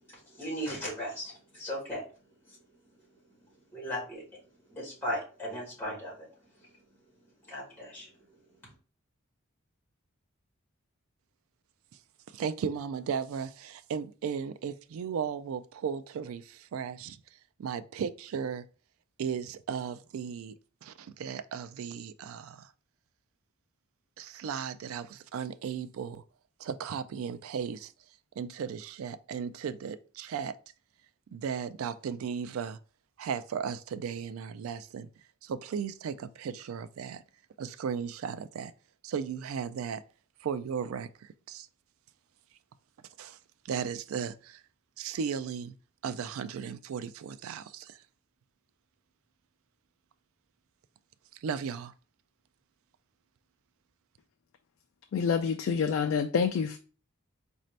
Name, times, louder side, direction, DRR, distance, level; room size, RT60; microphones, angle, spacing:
voice 1, 0.1-2.0 2.5-2.6 3.7-4.2 4.7-6.3 7.4-8.1, equal, 10° left, 2.0 m, -37 dB
voice 2, 12.3-17.2 17.6-18.6 19.2-20.5 20.8-22.7 24.2-26.2 26.6-27.9 28.4-30.6 31.3-32.8 33.2-35.1 35.4-37.2 37.6-38.7 39.0-40.0 40.4-41.7 43.2-43.4 43.7-44.6 45.0-45.7 46.0-48.0 51.4-51.9, right 7 dB, 75° right, 0.3 m, -36 dB
voice 3, 55.1-56.8, left 6 dB, 70° left, 0.3 m, -27 dB
4.2 x 2.6 x 3.1 m
head